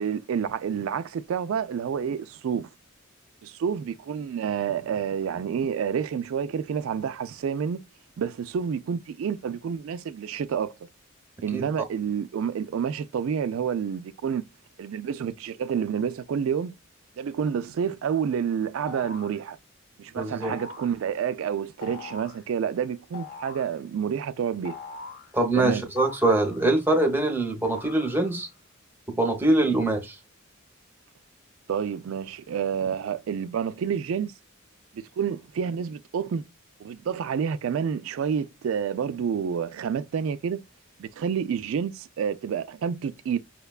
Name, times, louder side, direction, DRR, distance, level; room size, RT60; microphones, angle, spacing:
voice 1, 0.0-2.7 3.4-7.8 8.2-10.7 11.4-14.4 14.8-16.8 17.2-19.6 20.0-24.8 25.6-25.9 31.7-34.3 34.9-36.4 36.8-40.6 41.0-43.4, right 7 dB, 75° right, 0.3 m, -29 dB
sound 1, 18.9-19.4 20.4-21.0 21.8-22.4 23.1-23.8 24.6-25.3 26.0-26.9 27.6-28.5, left 4 dB, 45° left, 0.8 m, -42 dB
voice 2, 20.2-20.5 25.3-28.5 29.2-30.2, right 2 dB, 10° right, 0.7 m, -23 dB
5.6 x 2.2 x 2.3 m
head